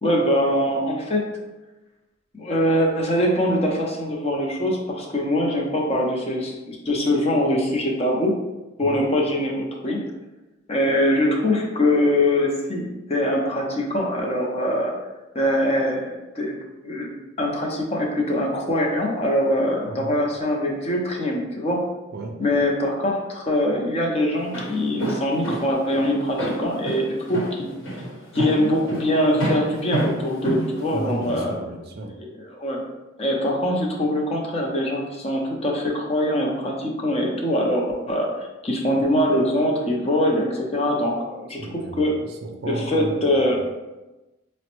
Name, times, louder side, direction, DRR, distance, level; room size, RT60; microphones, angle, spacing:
voice 1, 0.0-1.2 2.3-8.3 8.8-10.0 10.7-14.9 15.3-16.5 16.8-17.1 17.4-21.8 22.4-27.0 27.3-27.7 28.3-31.5 32.2-32.8 33.2-38.3 38.6-41.6 42.0-42.1 42.6-43.6, left 1 dB, 30° left, -1 dB, 0.5 m, -23 dB
voice 2, 19.9-20.2 22.1-22.3 30.9-32.1 41.6-43.5, right 2 dB, 50° right, 3 dB, 0.4 m, -33 dB
Walk footsteps, 24.3-31.5, right 1 dB, 65° left, 1.0 m, -29 dB
4.9 x 2.1 x 2.9 m, 1.1 s
head